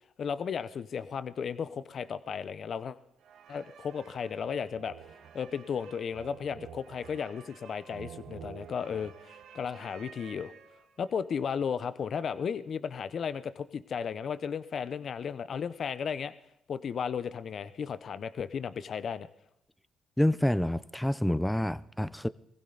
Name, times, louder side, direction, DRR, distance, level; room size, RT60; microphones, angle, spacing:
voice 1, 0.2-3.0 3.5-4.9 5.3-10.5 11.0-16.3 16.7-19.3, left 7 dB, 55° left, 14 dB, 0.7 m, -34 dB
sound 1, 3.2-11.1, right 8 dB, 75° right, 1.2 m, -50 dB
voice 2, 20.2-22.3, left 1 dB, 5° left, 17 dB, 0.6 m, -27 dB
20.5 x 15.5 x 3.9 m, 0.81 s
cardioid pair, 90°, 0 cm